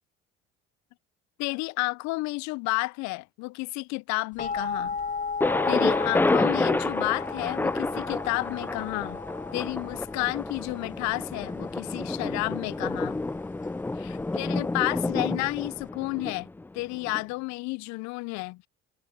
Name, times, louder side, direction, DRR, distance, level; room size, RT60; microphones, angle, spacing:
voice 1, 1.4-5.0 5.7-9.2 9.5-13.2 14.0-16.5 16.7-18.7, left 24 dB, 70° left, 0.6 m, -31 dB
sound 1, 4.4-15.9, left 5 dB, 25° left, 0.9 m, -37 dB
Thunder, 5.4-17.2, left 2 dB, 5° left, 0.4 m, -29 dB
hypercardioid pair, 65°, 29 cm